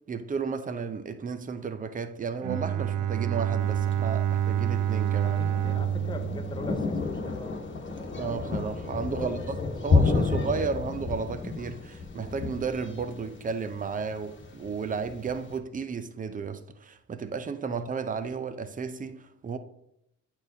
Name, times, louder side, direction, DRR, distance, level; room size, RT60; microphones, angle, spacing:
voice 1, 0.1-5.4 8.2-9.6 9.8-19.6, right 5 dB, 25° right, 0.6 m, -33 dB
Bowed string instrument, 2.4-7.3, right 10 dB, 70° right, 0.5 m, -28 dB
Thunder, 3.6-15.5, left 4 dB, 40° left, 1.2 m, -31 dB
voice 2, 5.2-7.6 9.1-10.7 17.7-17.9, left 3 dB, 15° left, 0.8 m, -42 dB
8.7 x 4.4 x 2.7 m
cardioid pair, 90°, 30 cm